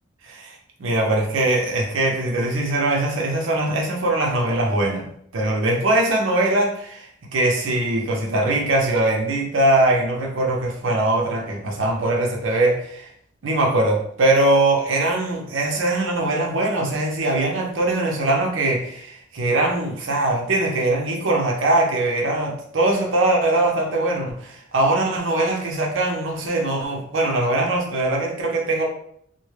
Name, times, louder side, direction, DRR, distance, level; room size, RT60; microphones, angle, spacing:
voice 1, 0.2-5.1 5.3-13.1 13.4-28.8, right 2 dB, 85° right, 0 dB, 0.6 m, -21 dB
2.2 x 2.1 x 3.1 m, 0.68 s
head